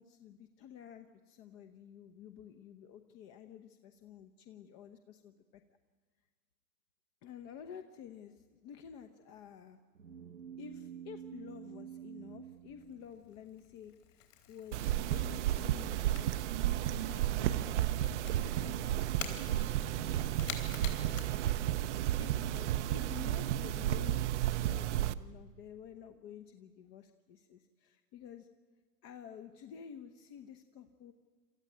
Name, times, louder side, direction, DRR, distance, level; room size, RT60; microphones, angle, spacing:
voice 1, 0.0-5.6 7.2-9.8 10.6-16.3 16.9-20.5 20.8-21.6 22.2-28.5 29.0-31.1, left 8 dB, 30° left, 7 dB, 1.0 m, -51 dB
sound 1, 9.9-13.6, right 9 dB, 85° right, 1.1 m, -49 dB
Crackle / Crack, 12.5-22.1, left 9 dB, 50° left, 4.1 m, -50 dB
sound 2, 14.7-25.1, right 13 dB, 45° right, 0.8 m, -32 dB
27.5 x 14.0 x 9.3 m, 1.5 s
figure-of-eight pair, 115°, 48 cm